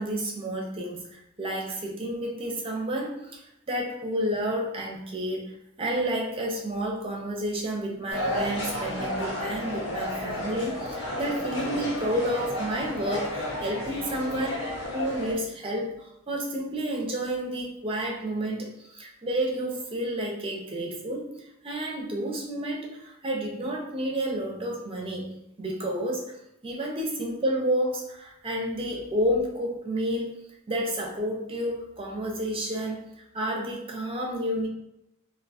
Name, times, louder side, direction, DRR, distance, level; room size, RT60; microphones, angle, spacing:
voice 1, 0.0-14.7 14.9-26.4 26.6-34.7, right 1 dB, 25° right, 0 dB, 0.5 m, -30 dB
sound 1, 8.1-15.3, left 1 dB, 70° left, 1.1 m, -32 dB
2.6 x 2.2 x 4.0 m, 0.81 s
head